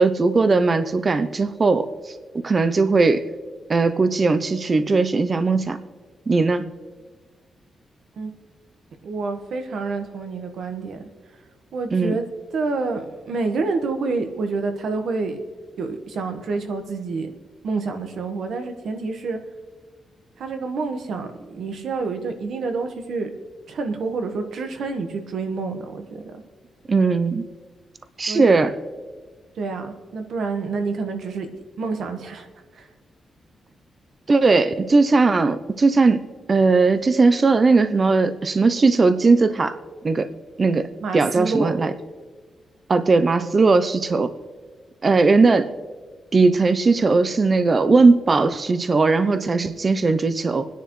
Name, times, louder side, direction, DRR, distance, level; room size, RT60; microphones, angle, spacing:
voice 1, 0.0-1.9 2.4-3.2 3.7-5.8 6.3-6.7 11.9-12.2 26.9-27.4 28.2-28.7 34.3-36.2 36.5-39.8 40.0-40.3 40.6-40.9 41.1-41.9 42.9-44.3 45.0-45.7 46.3-50.7, right 3 dB, 30° right, 11 dB, 0.6 m, -18 dB
voice 2, 9.0-11.0 11.7-12.2 12.5-15.4 15.8-17.3 17.6-19.4 20.4-23.3 23.7-26.2 28.3-28.6 29.6-31.5 31.8-32.5 32.8-32.9 41.0-41.8, right 4 dB, 70° right, 6 dB, 1.3 m, -28 dB
27.0 x 10.0 x 3.2 m, 1.5 s
wide cardioid pair, 145°, 0 cm